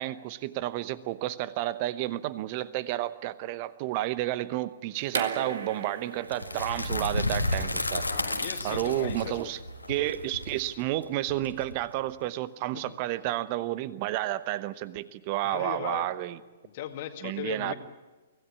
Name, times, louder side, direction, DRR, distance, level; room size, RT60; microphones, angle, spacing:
voice 1, 0.0-8.0 8.6-9.6 9.9-16.4 17.2-17.7, right 15 dB, 35° right, 16 dB, 0.9 m, -31 dB
sound 1, 5.1-10.7, right 5 dB, 60° right, 1.9 m, -39 dB
sound 2, 6.3-12.1, left 2 dB, 85° left, 1.6 m, -32 dB
voice 2, 8.1-9.6 12.7-12.9 15.4-16.1 16.6-17.7, left 11 dB, 45° left, 6 dB, 2.0 m, -38 dB
25.0 x 16.5 x 8.5 m, 1.2 s
figure-of-eight pair, 115°, 0 cm